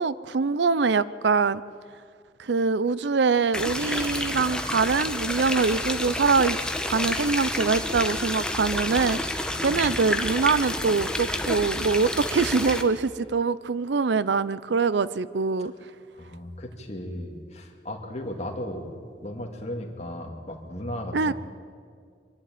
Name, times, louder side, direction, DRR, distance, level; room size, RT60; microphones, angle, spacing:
voice 1, 0.0-1.6 2.4-6.6 6.8-9.2 9.6-15.7 21.1-21.3, right 4 dB, 75° right, 17 dB, 0.5 m, -24 dB
sound 1, 3.5-12.8, left 1 dB, 5° left, 1.0 m, -29 dB
voice 2, 16.1-18.9 19.2-21.3, left 1 dB, 35° left, 1 dB, 2.3 m, -36 dB
24.5 x 11.5 x 9.3 m, 2.1 s
head